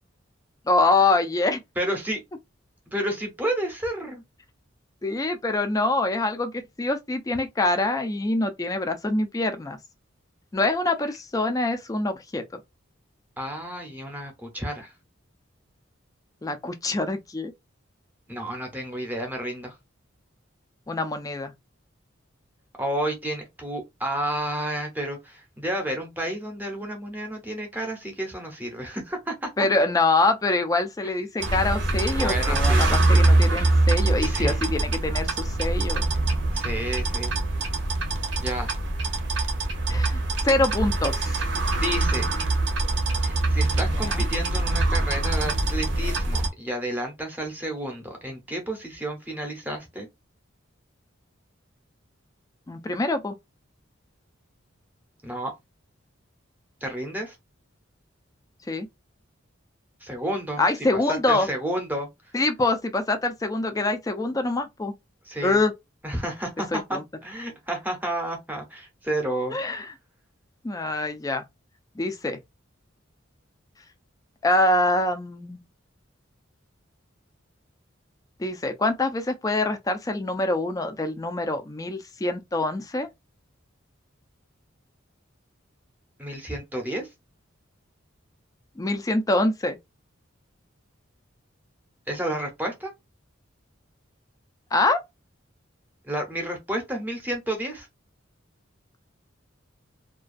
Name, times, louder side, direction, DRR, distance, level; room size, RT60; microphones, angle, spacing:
voice 1, 0.7-1.6 5.0-6.5 6.8-9.8 10.5-12.6 16.4-17.5 20.9-21.5 29.6-36.1 39.9-41.4 44.0-44.2 52.7-53.3 58.7-58.9 60.6-61.5 62.3-64.9 65.4-65.7 66.7-67.0 69.5-69.9 70.6-71.4 72.0-72.4 74.4-75.6 78.4-83.1 88.8-89.8 94.7-95.0, left 2 dB, 20° left, 0.3 m, -25 dB
voice 2, 1.8-2.2 2.9-4.2 13.4-14.9 18.3-19.7 22.8-29.5 31.0-31.1 32.2-33.2 33.7-33.9 34.1-34.6 36.5-37.3 38.4-38.7 39.9-40.2 41.7-42.3 43.2-50.1 55.2-55.5 56.8-57.4 60.0-60.6 60.9-62.1 65.3-65.6 66.0-69.6 86.2-87.1 92.1-92.9 96.0-97.9, right 1 dB, 10° right, 0.7 m, -31 dB
sound 1, 31.4-46.5, right 2 dB, 60° right, 0.6 m, -23 dB
2.4 x 2.2 x 2.4 m
head